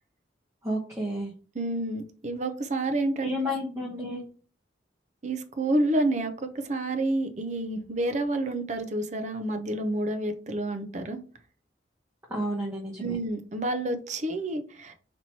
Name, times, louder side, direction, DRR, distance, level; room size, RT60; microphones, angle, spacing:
voice 1, 0.6-1.3 3.2-4.2 12.3-13.2, equal, 15° right, -3 dB, 0.9 m, -31 dB
voice 2, 1.6-3.3 5.2-11.2 13.0-14.9, right 2 dB, 40° right, 8 dB, 0.6 m, -29 dB
4.3 x 3.0 x 4.1 m, 0.40 s
head